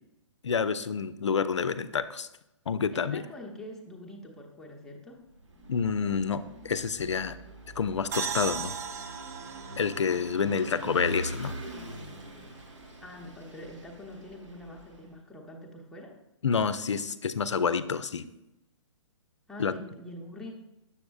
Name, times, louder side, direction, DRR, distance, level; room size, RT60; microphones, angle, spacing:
voice 1, 0.4-2.3 2.7-3.3 5.7-7.4 7.8-8.7 9.8-11.5 16.4-18.3 19.6-19.7, left 6 dB, 70° left, 14 dB, 0.4 m, -28 dB
voice 2, 2.9-5.2 13.0-16.2 19.5-20.5, left 1 dB, 5° left, -1 dB, 0.7 m, -44 dB
Vehicle / Engine, 5.3-15.1, right 1 dB, 75° right, 1.4 m, -43 dB
sound 1, 8.1-11.7, right 7 dB, 30° right, 0.5 m, -37 dB
7.0 x 6.9 x 2.4 m, 0.88 s
figure-of-eight pair, 125°, 16 cm